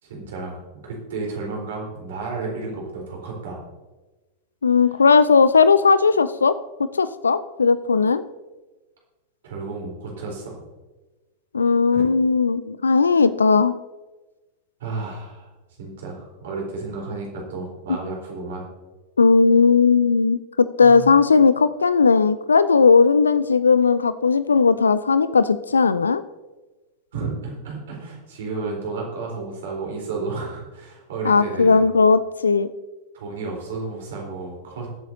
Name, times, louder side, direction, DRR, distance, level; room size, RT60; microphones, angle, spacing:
voice 1, 0.0-3.6 9.4-10.6 11.9-12.1 14.8-15.5 15.8-18.7 20.8-21.1 27.1-31.9 33.1-34.9, right 3 dB, 60° right, -2 dB, 3.9 m, -32 dB
voice 2, 4.6-6.6 6.9-8.2 11.5-13.7 19.2-26.2 31.2-32.7, left 5 dB, 75° left, 15 dB, 0.4 m, -17 dB
21.0 x 8.1 x 2.8 m, 1.2 s
figure-of-eight pair, 90°, 0 cm